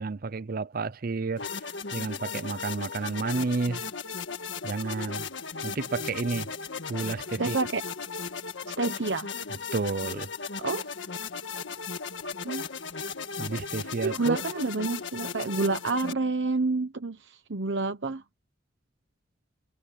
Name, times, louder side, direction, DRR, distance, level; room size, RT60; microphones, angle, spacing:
voice 1, 0.0-1.5 1.9-3.9 4.6-5.3 5.6-6.5 6.9-7.6 9.7-10.3 13.4-14.4, right 4 dB, 55° right, 0.6 m, -31 dB
sound 1, 1.4-16.1, left 5 dB, 85° left, 1.7 m, -36 dB
voice 2, 7.4-7.8 8.8-9.3 10.6-10.9 12.4-12.7 14.0-18.2, right 3 dB, 70° right, 1.1 m, -28 dB
head